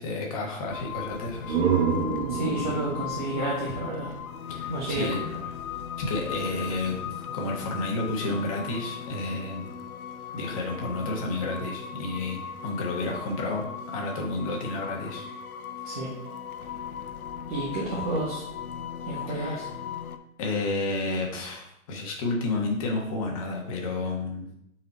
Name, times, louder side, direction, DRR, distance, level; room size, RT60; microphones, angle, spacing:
voice 1, 0.0-1.6 4.5-5.2 6.0-7.0 7.3-9.7 10.3-15.3 19.3-19.6 20.4-24.5, left 2 dB, 25° left, 0 dB, 1.1 m, -31 dB
sound 1, 0.7-20.2, left 8 dB, 80° left, 0.8 m, -38 dB
sound 2, 1.2-4.8, right 6 dB, 50° right, 1.5 m, -29 dB
voice 2, 2.3-4.1 4.7-5.2 15.8-16.1 17.5-18.4 19.0-19.7, right 2 dB, 25° right, -5 dB, 1.1 m, -31 dB
6.8 x 4.3 x 4.3 m, 0.79 s
hypercardioid pair, 165°, 43 cm